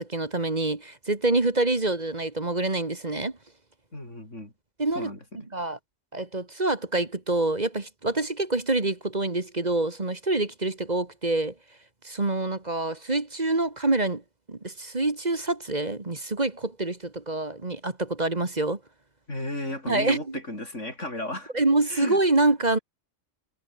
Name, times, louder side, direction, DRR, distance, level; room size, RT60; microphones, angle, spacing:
voice 1, 0.0-3.3 4.8-5.1 5.5-5.8 6.1-11.5 12.0-14.2 14.5-18.8 19.9-20.4 21.5-22.8, right 2 dB, 35° right, 2.1 m, -26 dB
voice 2, 3.9-4.5 4.9-5.5 19.3-21.5 21.9-22.2, left 1 dB, 80° left, 7.8 m, -35 dB
omnidirectional pair, 1.2 m